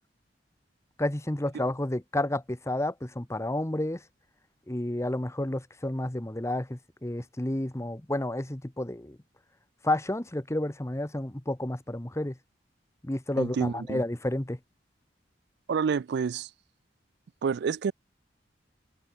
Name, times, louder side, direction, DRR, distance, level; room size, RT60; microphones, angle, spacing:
voice 1, 1.0-4.0 4.7-9.2 9.8-12.4 13.0-14.6, left 1 dB, 15° left, 1.2 m, -30 dB
voice 2, 13.4-14.0 15.7-16.5 17.4-17.9, right 6 dB, 65° right, 0.4 m, -29 dB
head